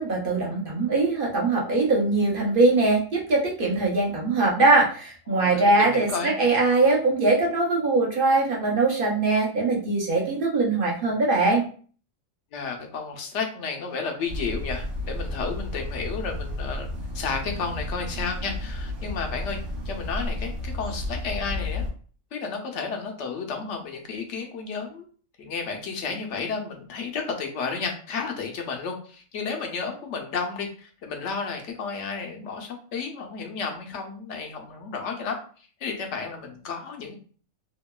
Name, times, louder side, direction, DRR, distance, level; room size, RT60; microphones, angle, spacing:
voice 1, 0.0-11.6, right 3 dB, 50° right, -2 dB, 0.7 m, -22 dB
voice 2, 5.3-6.3 12.5-16.9 17.1-19.6 19.8-21.8 22.3-25.1 25.4-35.4 35.8-37.2, left 5 dB, 70° left, 3 dB, 0.9 m, -32 dB
sound 1, 14.3-21.9, left 1 dB, 70° right, 1.1 m, -32 dB
2.8 x 2.2 x 2.2 m, 0.43 s
omnidirectional pair, 1.4 m